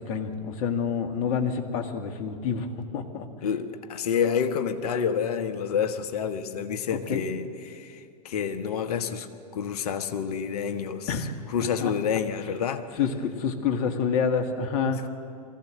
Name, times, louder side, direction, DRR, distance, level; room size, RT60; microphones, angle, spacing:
voice 1, 0.0-3.3 6.9-7.2 11.1-11.3 11.8-12.2 13.0-15.1, left 6 dB, 50° left, 6 dB, 2.0 m, -28 dB
voice 2, 3.4-9.3 9.5-11.2 11.5-12.9, left 7 dB, 65° left, 9 dB, 1.3 m, -28 dB
23.0 x 15.5 x 7.7 m, 2.4 s
hypercardioid pair, 100°, 21 cm